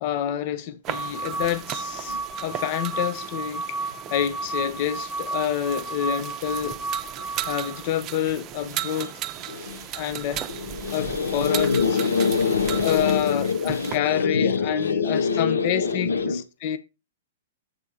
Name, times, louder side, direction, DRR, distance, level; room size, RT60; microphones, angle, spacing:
voice 1, 0.0-6.8 7.2-9.2 9.9-10.5 10.9-11.7 12.8-16.8, left 10 dB, 45° left, 0.7 m, -28 dB
sound 1, 0.8-14.0, right 12 dB, 30° right, 0.6 m, -36 dB
sound 2, 0.9-7.9, right 3 dB, 5° left, 1.1 m, -33 dB
voice 2, 9.5-16.4, left 5 dB, 90° left, 1.2 m, -25 dB
8.1 x 3.5 x 5.6 m
hypercardioid pair, 125°, 0 cm